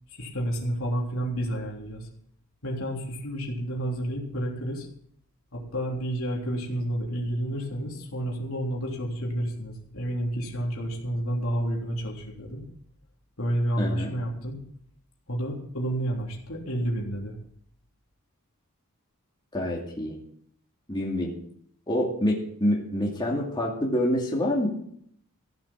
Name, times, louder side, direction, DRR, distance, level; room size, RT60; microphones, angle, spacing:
voice 1, 0.1-2.1 2.6-4.9 5.5-12.6 13.4-14.6 15.3-17.4, right 1 dB, 75° left, -2 dB, 3.5 m, -30 dB
voice 2, 13.8-14.1 19.5-20.1 20.9-21.3 21.9-24.7, left 1 dB, 20° left, -3 dB, 2.5 m, -26 dB
16.0 x 7.7 x 7.5 m, 0.66 s
head